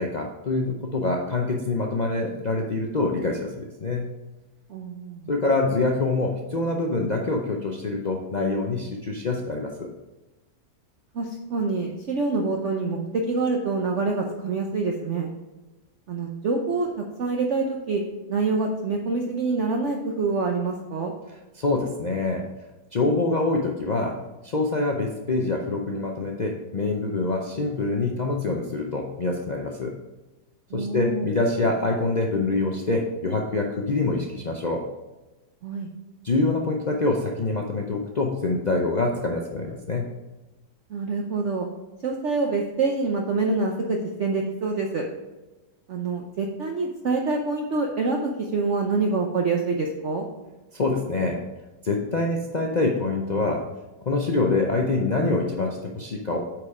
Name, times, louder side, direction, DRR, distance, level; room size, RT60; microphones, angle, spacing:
voice 1, 0.0-4.1 5.3-9.9 21.5-22.5 22.9-30.0 30.7-34.9 36.2-40.1 50.7-51.4 51.8-53.6 54.1-56.4, left 3 dB, 55° left, 1 dB, 0.4 m, -25 dB
voice 2, 4.7-5.3 11.1-15.3 16.1-16.9 17.2-18.0 18.3-21.1 30.7-31.3 35.6-35.9 40.9-41.7 42.0-45.0 45.9-50.2, right 3 dB, 55° right, 1 dB, 0.9 m, -26 dB
8.7 x 4.7 x 4.9 m, 1.1 s
omnidirectional pair, 1.8 m